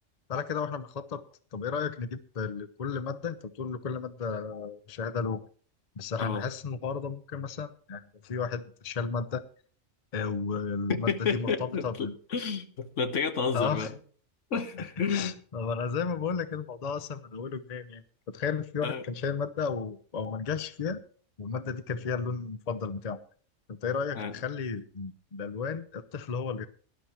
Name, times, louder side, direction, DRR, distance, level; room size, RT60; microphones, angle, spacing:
voice 1, 0.3-1.2 1.5-5.4 6.0-9.4 10.1-12.1 13.5-13.9 14.8-21.0 21.4-23.2 23.7-26.7, left 5 dB, 40° left, 12 dB, 0.7 m, -33 dB
voice 2, 10.9-13.9 14.5-15.4 18.8-19.0 24.1-24.3, left 5 dB, 80° left, 9 dB, 1.5 m, -30 dB
18.0 x 11.5 x 3.0 m, 0.43 s
omnidirectional pair, 1.3 m